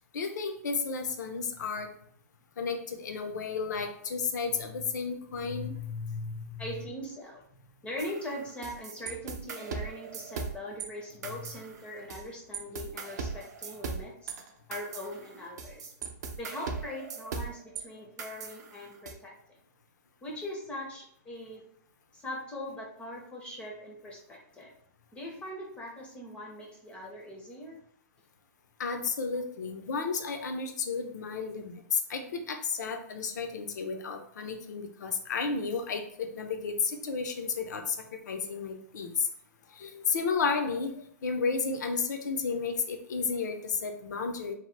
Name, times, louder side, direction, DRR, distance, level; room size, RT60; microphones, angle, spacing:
voice 1, 0.1-1.9 2.6-6.6 28.8-38.0 38.3-39.3 39.8-40.9 41.2-44.5, left 5 dB, 80° left, 5 dB, 0.5 m, -32 dB
voice 2, 6.6-7.4 7.8-15.9 16.4-19.4 20.2-21.6 22.1-24.7 25.1-27.8, left 1 dB, 10° left, -1 dB, 0.4 m, -41 dB
sound 1, 8.0-10.9 11.2-12.3 12.5-17.8 18.2-19.1, right 5 dB, 70° right, 0.5 m, -39 dB
2.8 x 2.0 x 3.1 m, 0.64 s
hypercardioid pair, 155°, 10 cm